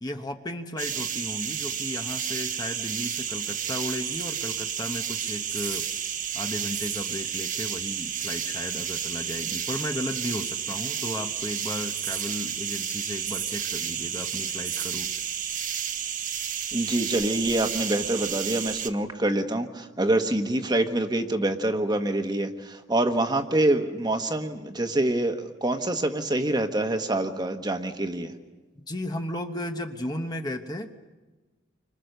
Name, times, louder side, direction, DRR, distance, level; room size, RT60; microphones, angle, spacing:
voice 1, 0.0-5.8 6.3-15.1 28.9-30.9, left 1 dB, 20° left, 5 dB, 1.0 m, -34 dB
sound 1, 0.8-18.9, right 8 dB, 40° right, 1.1 m, -31 dB
voice 2, 16.7-28.3, right 1 dB, 20° right, 6 dB, 1.3 m, -26 dB
29.0 x 25.0 x 6.8 m, 1.3 s
head